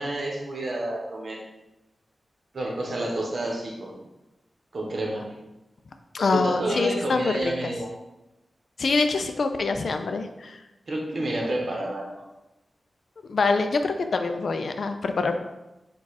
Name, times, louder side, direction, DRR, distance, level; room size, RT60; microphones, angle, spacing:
voice 1, 0.0-1.4 2.5-4.0 4.7-5.3 6.3-7.9 10.9-12.2, right 1 dB, 55° right, -1 dB, 0.9 m, -29 dB
voice 2, 6.1-7.7 8.8-10.6 13.3-15.4, left 4 dB, 70° left, 7 dB, 0.4 m, -25 dB
4.8 x 2.3 x 4.0 m, 0.99 s
wide cardioid pair, 125°, 0 cm